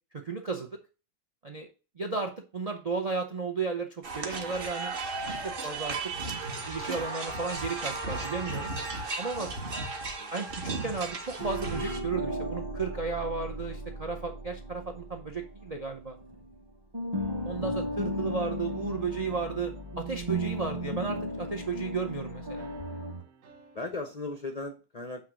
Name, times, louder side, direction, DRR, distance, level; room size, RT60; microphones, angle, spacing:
voice 1, 0.1-0.8 1.4-1.7 2.0-4.9 5.4-6.0 6.5-8.7 9.2-9.5 10.3-16.2 17.4-22.7, right 4 dB, 75° right, 5 dB, 0.3 m, -34 dB
sound 1, 4.0-12.0, right 3 dB, 40° right, 1.0 m, -35 dB
sound 2, 11.4-16.6 16.9-23.2, equal, 20° right, 0.7 m, -35 dB
sound 3, 18.5-21.7 22.6-23.9, right 5 dB, 55° right, 1.3 m, -55 dB
voice 2, 23.7-25.2, left 3 dB, 55° left, 4 dB, 0.4 m, -38 dB
8.3 x 3.0 x 6.1 m, 0.34 s
omnidirectional pair, 1.9 m